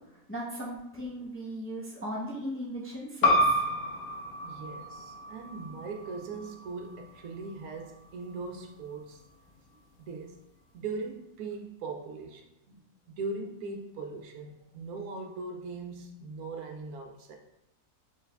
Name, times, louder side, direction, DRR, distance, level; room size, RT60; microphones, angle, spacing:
voice 1, 0.3-3.6, equal, 10° left, -5 dB, 0.7 m, -37 dB
sound 1, 3.2-8.4, equal, 65° left, 0.9 m, -30 dB
voice 2, 4.4-9.2 10.0-10.4 10.7-12.8 13.1-17.4, right 3 dB, 75° right, 3 dB, 1.1 m, -40 dB
4.5 x 3.3 x 3.3 m, 0.87 s
omnidirectional pair, 1.6 m